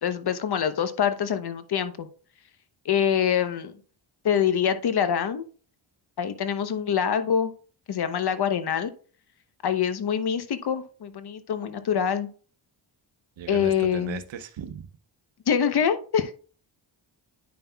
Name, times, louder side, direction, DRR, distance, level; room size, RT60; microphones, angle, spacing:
voice 1, 0.0-2.1 2.8-3.7 4.2-5.5 6.2-7.5 7.9-8.9 9.6-12.3 13.5-14.2 15.5-16.3, left 8 dB, 50° left, 0.9 m, -25 dB
voice 2, 13.4-14.9, right 9 dB, 65° right, 0.9 m, -37 dB
10.0 x 5.4 x 2.3 m
supercardioid pair, 60°, 48 cm